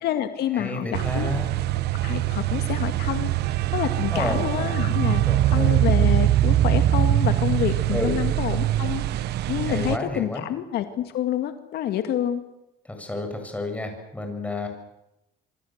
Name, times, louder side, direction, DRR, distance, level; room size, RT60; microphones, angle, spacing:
voice 1, 0.0-1.3 2.0-5.2 5.5-9.0 9.5-12.4, left 11 dB, 70° left, 8 dB, 2.1 m, -28 dB
voice 2, 0.5-1.6 4.1-4.7 5.2-5.8 7.9-8.1 9.7-10.5 12.9-14.7, left 2 dB, 10° left, 4 dB, 7.9 m, -31 dB
sound 1, 0.9-10.0, right 13 dB, 75° right, 1.2 m, -23 dB
26.5 x 24.5 x 8.1 m, 0.89 s
cardioid pair, 110°, 17 cm